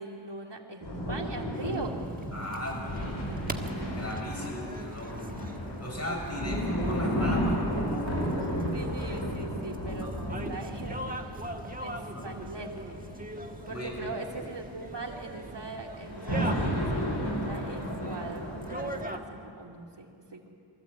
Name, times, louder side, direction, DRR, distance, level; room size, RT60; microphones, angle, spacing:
voice 1, 0.0-2.0 8.7-11.0 11.8-12.9 13.7-20.5, right 3 dB, 55° right, 0 dB, 2.6 m, -41 dB
sound 1, 0.8-19.1, equal, 65° left, 5.1 m, -33 dB
sound 2, 1.5-19.2, right 1 dB, 15° right, 1.4 m, -42 dB
voice 2, 2.3-5.2 5.8-8.5 10.0-10.2 12.1-12.4 13.6-13.9, left 1 dB, 30° left, -2 dB, 6.5 m, -37 dB
23.0 x 14.0 x 8.3 m, 2.5 s
wide cardioid pair, 55°, 49 cm